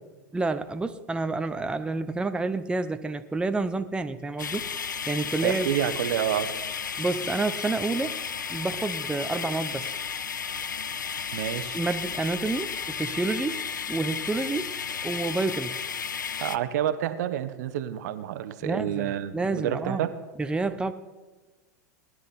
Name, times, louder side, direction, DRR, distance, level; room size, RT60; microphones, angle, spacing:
voice 1, 0.3-4.7 5.1-5.7 7.0-8.2 8.5-10.0 11.7-13.6 13.9-14.7 15.0-15.9 18.6-20.1 20.4-20.9, right 3 dB, 10° right, 8 dB, 0.8 m, -29 dB
sound 1, 4.4-16.6, left 7 dB, 85° left, 0.6 m, -33 dB
voice 2, 5.4-6.5 11.3-11.8 16.4-20.1, right 11 dB, 65° right, 12 dB, 1.2 m, -28 dB
19.5 x 11.0 x 4.2 m, 1.2 s
hypercardioid pair, 90°, 10 cm